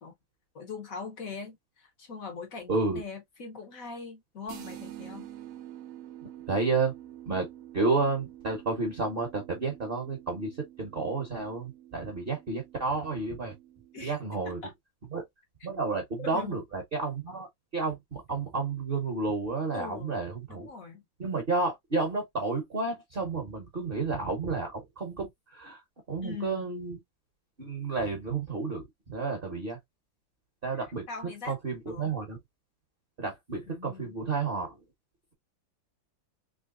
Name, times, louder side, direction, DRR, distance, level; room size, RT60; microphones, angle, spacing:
voice 1, 0.5-5.3 13.9-14.1 14.6-14.7 16.2-16.6 19.7-20.1 20.5-21.0 26.2-26.7 31.1-31.6 31.9-32.1 33.7-34.1, left 4 dB, 55° left, 1.1 m, -41 dB
voice 2, 2.7-3.0 6.5-6.9 7.3-7.5 7.7-13.5 14.0-14.6 15.1-15.2 15.6-17.5 17.7-20.7 21.2-25.8 26.1-27.0 27.6-29.8 30.6-31.1 31.4-32.4 33.2-34.8, right 3 dB, 35° right, 1.0 m, -31 dB
sound 1, 4.5-14.1, right 12 dB, 65° right, 0.9 m, -48 dB
3.9 x 3.1 x 2.4 m
omnidirectional pair, 2.1 m